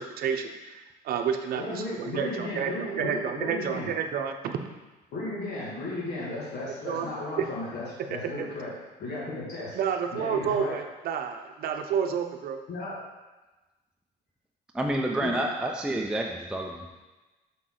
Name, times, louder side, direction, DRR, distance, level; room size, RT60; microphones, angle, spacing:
voice 1, 0.0-4.5 6.6-7.1 7.4-7.5 9.7-12.6, right 7 dB, 60° right, 5 dB, 0.7 m, -30 dB
voice 2, 1.5-3.9 5.1-8.7 9.0-9.8 10.1-10.8 12.7-12.9 15.2-15.3, left 2 dB, 70° left, -7 dB, 2.2 m, -35 dB
voice 3, 14.7-17.0, right 1 dB, 5° right, 0 dB, 0.5 m, -29 dB
6.0 x 5.7 x 3.8 m, 1.2 s
cardioid pair, 110°, 17 cm